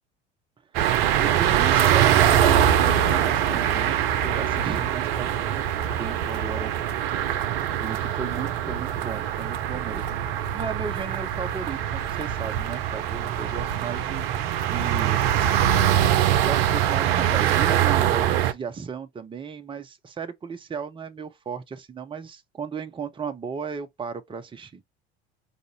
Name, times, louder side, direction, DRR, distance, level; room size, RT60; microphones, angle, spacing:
voice 1, 0.7-5.7 6.0-6.7 7.8-14.3 14.7-15.3 16.4-24.8, right 6 dB, 15° right, 0.7 m, -35 dB
sound 1, 0.7-18.5, right 10 dB, 65° right, 0.6 m, -23 dB
4.9 x 2.5 x 2.7 m
figure-of-eight pair, 70°, 33 cm